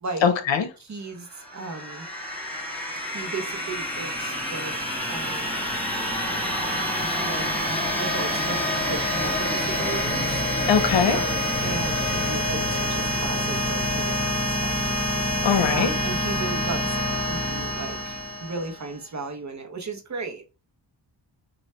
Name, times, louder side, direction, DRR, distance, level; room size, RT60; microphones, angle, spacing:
voice 1, 0.2-0.7 10.7-11.2 15.4-15.9, left 7 dB, 70° left, 0.8 m, -21 dB
voice 2, 0.8-2.1 3.0-4.7 5.1-5.6 7.2-7.5 8.0-8.6 8.9-10.4 11.1-15.2 15.7-20.4, right 3 dB, 40° right, 0.7 m, -35 dB
sound 1, 1.3-19.0, left 1 dB, 5° left, 1.1 m, -27 dB
3.2 x 2.3 x 4.2 m
wide cardioid pair, 135°, 46 cm